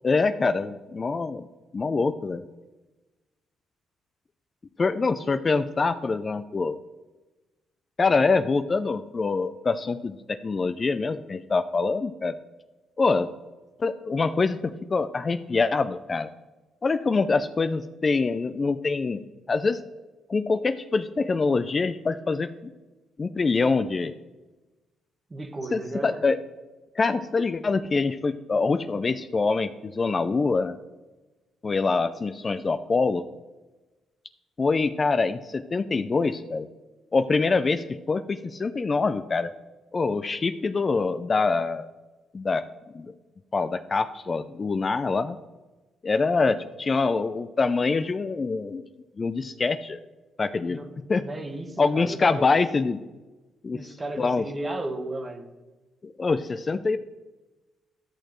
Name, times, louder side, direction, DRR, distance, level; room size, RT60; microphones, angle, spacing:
voice 1, 0.0-1.5 1.7-2.4 4.8-6.8 8.0-12.4 13.0-13.3 13.8-16.3 16.8-19.8 20.3-22.7 23.2-24.2 25.7-26.4 27.0-30.8 31.6-33.2 34.6-36.7 37.1-39.5 39.9-41.9 42.3-42.7 42.9-43.1 43.5-45.4 46.0-48.9 49.2-50.0 50.4-50.8 51.1-51.3 51.8-53.0 53.6-53.8 54.2-54.4 56.0-57.0, left 4 dB, 35° left, 11 dB, 0.4 m, -25 dB
voice 2, 25.3-26.2 50.7-50.9 51.1-52.6 53.7-55.5, right 2 dB, 25° right, 5 dB, 1.2 m, -34 dB
13.0 x 6.5 x 3.1 m, 1.1 s
cardioid pair, 90°, 0 cm